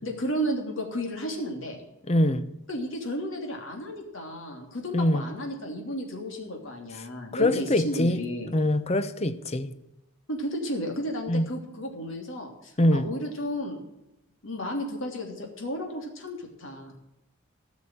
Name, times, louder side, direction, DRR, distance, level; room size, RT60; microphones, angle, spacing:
voice 1, 0.0-1.8 2.7-8.5 10.3-13.8 14.4-16.9, equal, 65° left, 3.0 m, -33 dB
voice 2, 2.1-2.5 4.9-5.2 7.3-8.2 8.5-9.7 11.3-11.4 12.8-13.1, left 1 dB, 30° left, 0.7 m, -23 dB
14.0 x 6.2 x 8.9 m
head